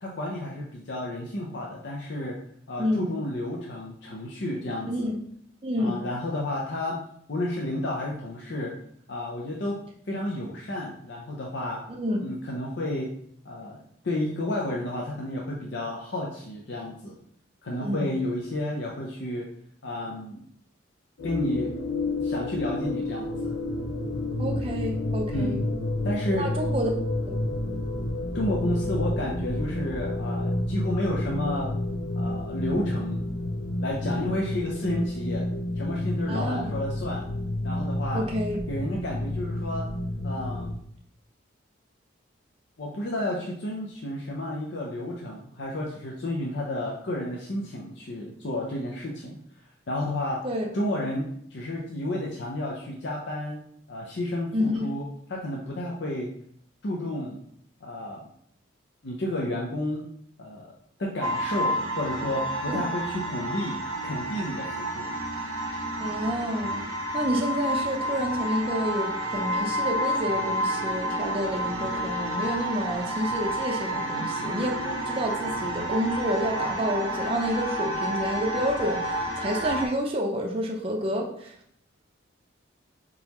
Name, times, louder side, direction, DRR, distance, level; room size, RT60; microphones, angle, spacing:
voice 1, 0.0-2.4 2.7-5.1 5.8-7.0 7.3-8.7 9.1-9.8 10.1-11.8 12.2-13.1 13.4-17.2 17.6-19.5 19.8-20.4 21.2-21.8 22.2-23.6 25.3-25.7 26.0-26.5 28.3-31.7 32.1-33.3 33.8-35.5 35.8-37.2 37.6-38.2 38.7-39.9 40.2-40.7 42.8-49.4 49.9-50.4 50.7-53.6 53.9-55.0 55.3-56.3 56.8-57.4 57.8-58.3 59.0-60.1 60.4-60.7 61.0-65.1, left 1 dB, 60° left, -2 dB, 0.6 m, -31 dB
voice 2, 4.9-5.2 5.6-6.0 11.9-12.3 17.7-18.1 24.4-25.6 26.4-27.0 27.3-27.4 36.3-36.8 38.1-38.6 50.4-50.7 54.5-54.9 62.7-62.8 66.0-66.8 67.1-81.5, equal, 30° right, 0 dB, 0.5 m, -29 dB
sound 1, 21.2-40.7, left 1 dB, 90° left, 1.0 m, -30 dB
sound 2, 61.2-79.9, right 1 dB, 90° right, 0.9 m, -30 dB
4.1 x 3.8 x 3.0 m, 0.68 s
head